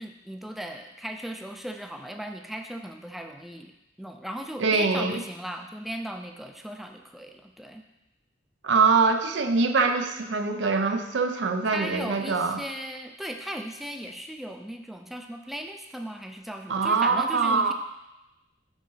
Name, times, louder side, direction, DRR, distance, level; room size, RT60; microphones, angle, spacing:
voice 1, 0.0-3.7 4.0-7.8 11.7-17.7, equal, ahead, 4 dB, 0.4 m, -37 dB
voice 2, 4.6-5.2 8.6-12.6 16.7-17.7, right 4 dB, 75° right, 6 dB, 0.6 m, -23 dB
6.2 x 3.8 x 5.6 m, 0.92 s
head